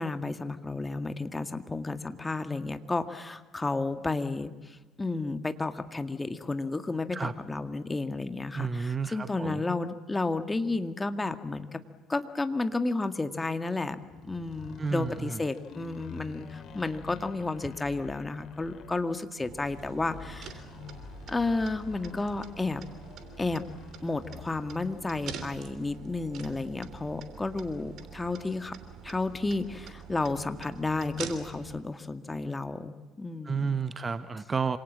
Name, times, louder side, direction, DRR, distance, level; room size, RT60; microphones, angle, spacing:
voice 1, 0.0-11.8 12.1-20.6 21.3-22.8 23.4-23.7 24.0-28.7 29.0-32.9 33.2-33.8, left 3 dB, 15° left, 9 dB, 2.0 m, -32 dB
voice 2, 8.5-9.6 14.8-15.4 33.4-34.8, right 5 dB, 30° right, 13 dB, 1.2 m, -31 dB
sound 1, 14.0-24.8, left 7 dB, 50° left, 2.8 m, -48 dB
sound 2, 19.4-31.8, right 7 dB, 55° right, 3.3 m, -45 dB
27.5 x 26.0 x 7.5 m, 1.2 s
figure-of-eight pair, 55°, 0 cm